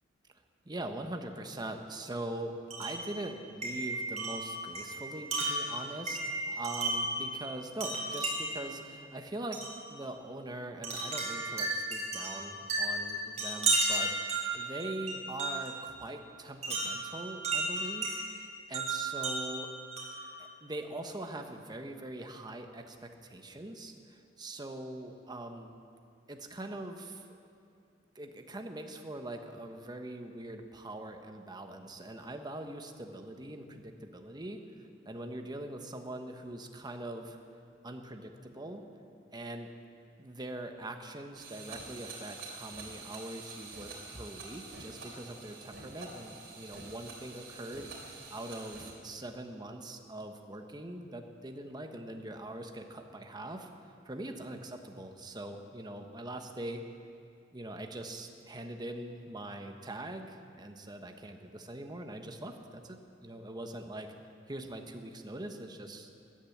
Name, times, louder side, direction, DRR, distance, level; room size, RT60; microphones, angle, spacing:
voice 1, 0.6-6.2 6.6-19.7 20.4-25.8 26.3-27.4 28.1-37.4 37.8-38.8 39.3-39.7 40.2-53.7 54.0-56.8 57.5-64.1 64.5-66.1, right 1 dB, 20° right, 5 dB, 1.1 m, -42 dB
Wind chime, 2.7-3.1 3.6-7.2 7.8-8.6 9.5-9.8 10.8-15.8 16.6-18.2 18.7-20.3, right 2 dB, 40° right, 3.8 m, -33 dB
sound 1, 41.3-48.9, right 3 dB, 60° right, 3.4 m, -47 dB
16.5 x 10.5 x 7.2 m, 2.5 s
head